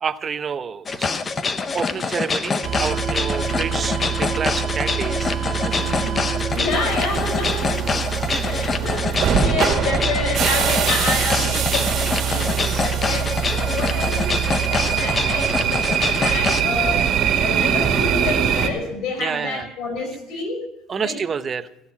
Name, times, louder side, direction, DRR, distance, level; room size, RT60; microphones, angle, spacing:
voice 1, 0.0-1.1 1.7-5.3 5.6-5.8 8.3-8.4 19.2-19.7 20.9-21.7, right 6 dB, 30° right, 12 dB, 0.8 m, -28 dB
sound 1, 0.9-16.6, left 4 dB, 25° left, 0.8 m, -25 dB
sound 2, 2.6-18.7, right 8 dB, 50° right, 2.2 m, -23 dB
voice 2, 5.8-6.3 6.5-17.1 17.4-20.7 20.9-21.2, left 3 dB, 65° left, 5 dB, 5.4 m, -29 dB
15.5 x 11.5 x 5.9 m, 0.83 s
cardioid pair, 125°, 0 cm